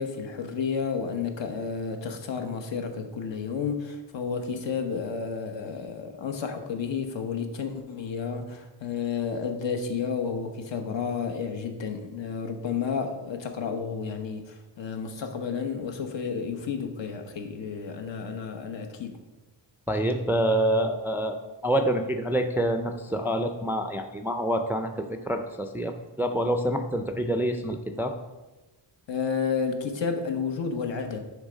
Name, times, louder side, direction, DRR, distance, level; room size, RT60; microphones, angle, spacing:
voice 1, 0.0-19.2 29.1-31.2, left 6 dB, 70° left, 5 dB, 1.0 m, -31 dB
voice 2, 19.9-21.4 21.6-28.2, right 1 dB, 5° right, 6 dB, 0.3 m, -27 dB
10.0 x 3.4 x 5.1 m, 1.1 s
wide cardioid pair, 160°, 46 cm